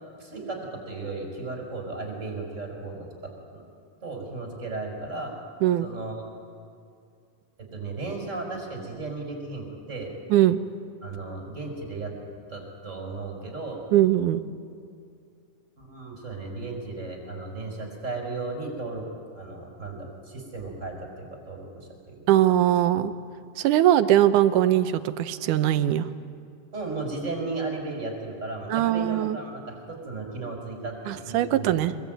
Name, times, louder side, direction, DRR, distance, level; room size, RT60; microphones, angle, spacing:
voice 1, 0.2-3.6 4.0-5.3 5.8-6.3 7.6-10.1 11.0-12.1 12.5-13.8 15.8-19.0 19.3-22.2 26.7-32.0, right 3 dB, 20° right, 1 dB, 5.5 m, -35 dB
voice 2, 13.9-14.4 22.3-23.1 23.6-26.1 28.7-29.4 31.1-31.9, right 12 dB, 85° right, 12 dB, 2.4 m, -21 dB
24.5 x 22.0 x 9.2 m, 2.4 s
omnidirectional pair, 3.6 m